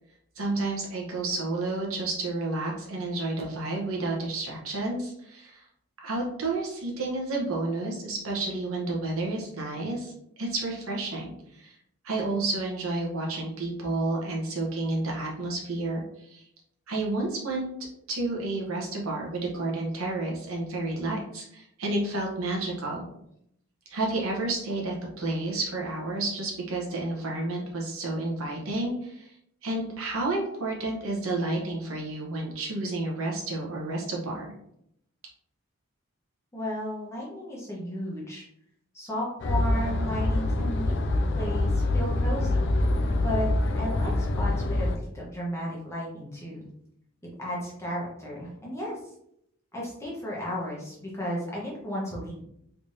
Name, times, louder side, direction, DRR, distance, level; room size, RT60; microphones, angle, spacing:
voice 1, 0.4-5.6 6.0-10.1 10.4-11.8 12.0-16.4 16.9-17.7 18.1-23.1 23.9-29.3 29.6-34.5, right 2 dB, 80° right, -2 dB, 1.0 m, -30 dB
voice 2, 36.5-38.4 38.9-41.0 41.3-42.7 42.9-43.5 43.7-46.7 47.4-49.0 49.7-52.4, equal, 15° left, -5 dB, 0.9 m, -34 dB
sound 1, 39.4-45.0, left 2 dB, 55° left, 0.4 m, -25 dB
3.4 x 3.4 x 2.7 m, 0.74 s
head